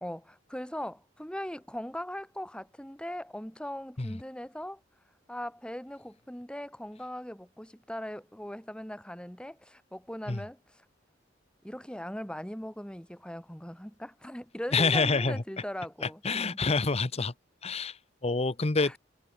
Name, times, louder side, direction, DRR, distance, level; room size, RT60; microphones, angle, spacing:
voice 1, 0.0-4.8 5.3-10.6 11.6-16.6 18.8-18.9, equal, 5° left, 2.4 m, -39 dB
voice 2, 14.7-15.4 16.0-17.3 17.6-19.0, left 4 dB, 35° left, 0.9 m, -27 dB
head